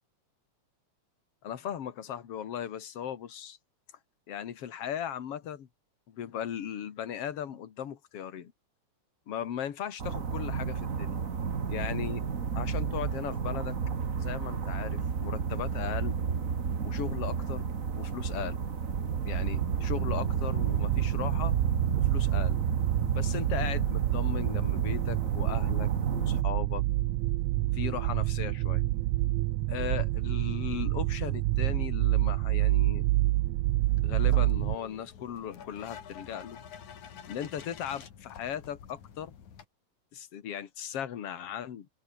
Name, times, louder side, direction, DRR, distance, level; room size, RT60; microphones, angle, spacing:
voice 1, 1.4-3.6 4.3-5.7 6.1-8.5 9.3-11.2 11.7-12.2 12.6-13.8 14.2-16.2 16.8-17.7 18.0-18.6 19.2-21.6 22.0-22.6 23.1-26.8 27.7-28.9 29.7-33.1 34.0-36.6 37.3-39.3 40.1-41.9, left 9 dB, 55° left, 2.7 m, -37 dB
sound 1, 10.0-26.4, right 6 dB, 35° right, 1.5 m, -32 dB
sound 2, 18.8-34.8, right 18 dB, 75° right, 1.7 m, -28 dB
sound 3, 33.8-39.7, left 8 dB, 80° left, 3.9 m, -48 dB
open air
omnidirectional pair, 3.4 m